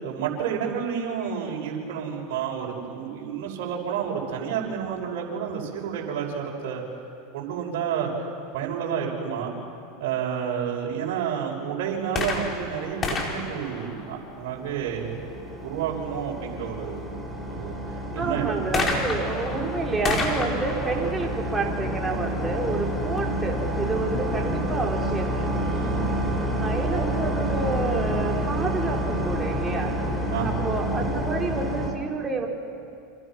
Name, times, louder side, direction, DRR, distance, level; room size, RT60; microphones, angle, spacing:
voice 1, 0.0-6.8 7.3-8.1 8.5-9.5 10.0-15.2 15.6-17.1 17.5-17.8 18.1-18.5 25.7-26.3 30.3-30.9, right 8 dB, 65° right, -2 dB, 6.1 m, -30 dB
sound 1, 12.1-14.7 18.7-22.4 23.2-23.3, left 3 dB, 30° left, 4.7 m, -31 dB
sound 2, 14.4-31.9, equal, 5° left, 5.1 m, -29 dB
voice 2, 18.2-25.5 26.6-32.5, right 3 dB, 15° right, 0 dB, 4.4 m, -29 dB
29.5 x 26.5 x 6.2 m, 2.5 s
hypercardioid pair, 95°, 0 cm